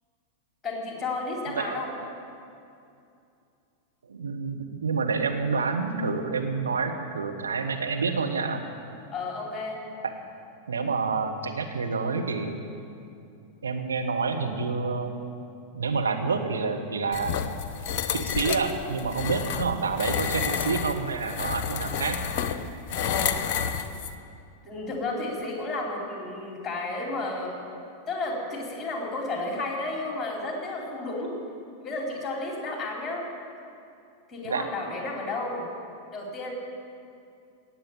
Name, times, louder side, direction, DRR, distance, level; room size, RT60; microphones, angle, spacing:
voice 1, 0.6-1.9 9.1-9.8 22.9-23.7 24.6-27.5 28.1-31.3 31.8-33.2 34.3-35.6 36.1-36.5, left 2 dB, 15° left, -1 dB, 4.0 m, -32 dB
voice 2, 1.5-2.0 4.1-8.6 10.0-10.1 10.7-12.5 13.6-15.1 15.7-17.4 18.1-22.2 34.4-34.7, right 4 dB, 70° right, 3 dB, 1.4 m, -28 dB
sound 1, 17.1-24.1, left 7 dB, 45° left, 0.8 m, -30 dB
18.0 x 7.6 x 8.9 m, 2.5 s
figure-of-eight pair, 90°, 0 cm